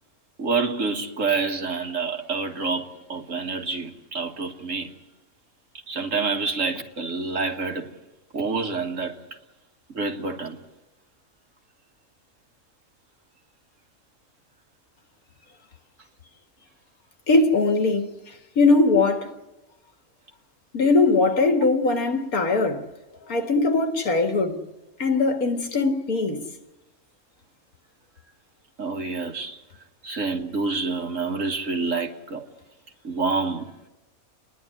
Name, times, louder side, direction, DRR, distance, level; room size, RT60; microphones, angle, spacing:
voice 1, 0.4-4.9 5.9-7.9 8.3-9.2 9.9-10.6 28.8-29.6 30.0-32.4 33.0-33.9, right 4 dB, 60° right, 2.1 m, -27 dB
voice 2, 17.3-18.1 18.6-19.3 20.7-22.8 23.3-24.6 25.0-26.4, left 3 dB, 80° left, 2.2 m, -20 dB
29.5 x 11.0 x 9.9 m
omnidirectional pair, 1.5 m